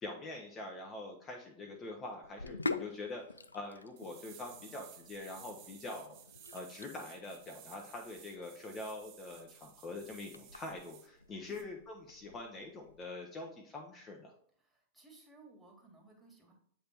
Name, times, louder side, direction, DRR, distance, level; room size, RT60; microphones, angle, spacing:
voice 1, 0.0-6.2 6.5-14.3, left 2 dB, 25° left, 1 dB, 0.8 m, -44 dB
Sink (filling or washing), 2.2-13.1, left 3 dB, 85° left, 0.3 m, -46 dB
sound 1, 4.0-11.1 11.5-11.6, right 10 dB, 45° right, 0.7 m, -56 dB
voice 2, 11.3-11.6 14.6-16.5, right 3 dB, 10° right, -1 dB, 1.9 m, -59 dB
7.8 x 3.5 x 4.4 m, 0.64 s
figure-of-eight pair, 95°, 0 cm